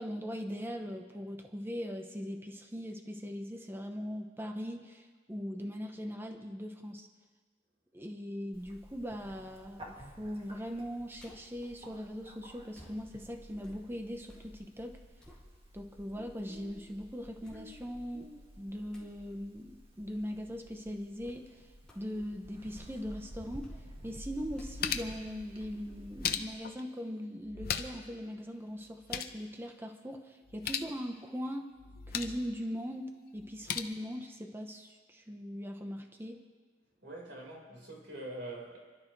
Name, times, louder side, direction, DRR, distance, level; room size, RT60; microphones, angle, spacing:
voice 1, 0.0-7.1 7.9-15.0 15.7-18.3 18.6-23.7 24.0-31.7 32.1-36.4, equal, 15° right, 4 dB, 0.9 m, -40 dB
Bird, 8.5-26.5, equal, 30° right, 2.0 m, -52 dB
sound 1, 11.2-11.6 12.7-14.5 14.9-16.0 16.5-16.6 17.4-18.1 18.9-19.2 21.2-21.5 21.8-22.2 22.6-23.2 23.6-23.9 24.5-26.2 26.6-26.7, left 1 dB, 5° left, 3.1 m, -59 dB
sound 2, 23.8-23.9 24.4-25.3 25.9-26.8 27.4-28.1 28.4-28.5 28.8-29.4 30.4-30.9 31.8-32.4 33.4-33.8, left 8 dB, 60° left, 0.8 m, -37 dB
voice 2, 37.0-38.8, right 1 dB, 90° right, -3 dB, 4.7 m, -44 dB
29.0 x 12.0 x 3.3 m, 1.5 s
head